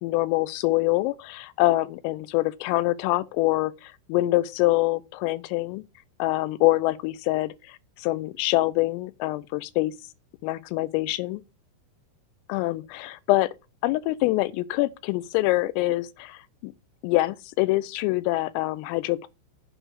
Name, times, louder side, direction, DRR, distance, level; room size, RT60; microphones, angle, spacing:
voice 1, 0.0-5.8 6.2-9.9 10.4-11.4 12.5-13.5 13.8-16.7 17.0-19.3, left 18 dB, 90° left, 3.3 m, -25 dB
7.8 x 4.8 x 6.2 m
omnidirectional pair, 5.8 m